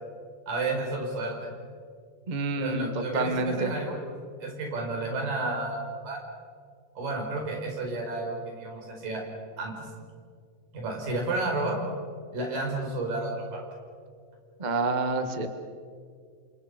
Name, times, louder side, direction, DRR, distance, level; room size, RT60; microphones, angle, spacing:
voice 1, 0.5-1.4 2.6-4.1 4.4-6.2 7.0-9.2 9.6-9.9 10.7-11.8 12.3-13.6, right 2 dB, 80° right, 1 dB, 6.5 m, -31 dB
voice 2, 2.3-3.7 14.6-15.5, right 3 dB, 55° right, 7 dB, 0.4 m, -28 dB
28.5 x 27.0 x 5.3 m, 2.1 s
omnidirectional pair, 3.9 m